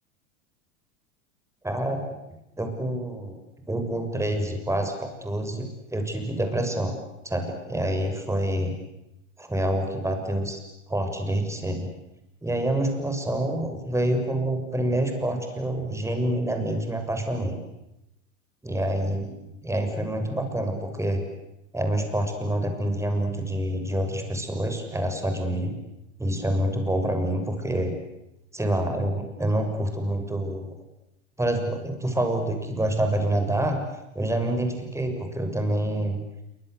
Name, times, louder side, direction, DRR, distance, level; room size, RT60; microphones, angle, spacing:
voice 1, 1.6-2.0 2.6-3.3 3.7-7.0 7.2-8.8 9.4-10.6 10.9-11.9 12.4-17.6 18.7-19.2 19.6-21.2 21.7-25.8 26.2-27.9 28.5-30.7 31.4-33.8 34.2-36.2, right 1 dB, 5° right, 5 dB, 6.9 m, -27 dB
28.0 x 25.0 x 8.2 m, 0.88 s
hypercardioid pair, 95°, 40 cm